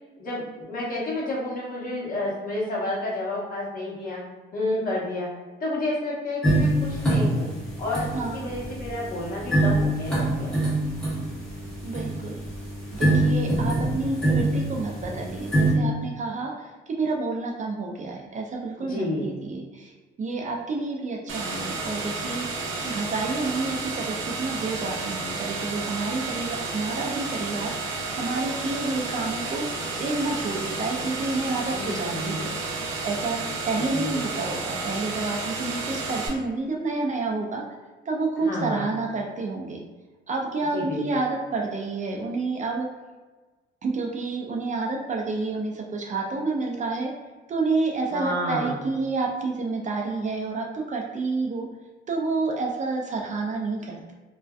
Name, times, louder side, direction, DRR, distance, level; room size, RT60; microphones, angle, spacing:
voice 1, 0.2-4.2 4.5-5.3 5.6-7.5 7.8-10.7 18.8-19.3 31.7-32.5 33.9-34.3 38.4-38.9 40.7-41.2 48.1-48.8, left 1 dB, 45° left, -6 dB, 1.0 m, -30 dB
sound 1, 6.4-15.7, right 1 dB, 5° left, 1.0 m, -25 dB
voice 2, 11.8-12.4 12.9-19.9 20.2-22.5 22.8-29.7 30.0-32.6 33.0-37.6 38.1-39.8 40.3-42.9 43.8-47.1 47.5-51.7 52.1-54.1, right 3 dB, 40° right, 0 dB, 0.4 m, -29 dB
sound 2, 21.3-36.3, right 3 dB, 85° right, 0.6 m, -31 dB
2.5 x 2.2 x 2.3 m, 1.2 s
cardioid pair, 90°, 20 cm